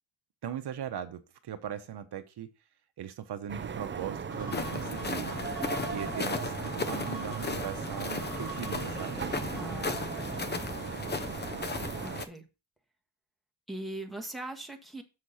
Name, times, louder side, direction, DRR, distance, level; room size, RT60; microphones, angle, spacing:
voice 1, 0.4-2.5 3.0-5.3 5.9-9.2, right 9 dB, 65° right, 0.9 m, -39 dB
sound 1, 3.5-12.2, right 6 dB, 25° right, 0.5 m, -38 dB
sound 2, 4.3-9.9, left 1 dB, 40° left, 4.4 m, -46 dB
sound 3, 4.5-12.2, left 4 dB, 25° left, 0.7 m, -36 dB
voice 2, 9.5-10.6 12.0-12.4 13.7-15.0, right 1 dB, ahead, 1.4 m, -41 dB
6.8 x 6.5 x 4.1 m
cardioid pair, 125°, 44 cm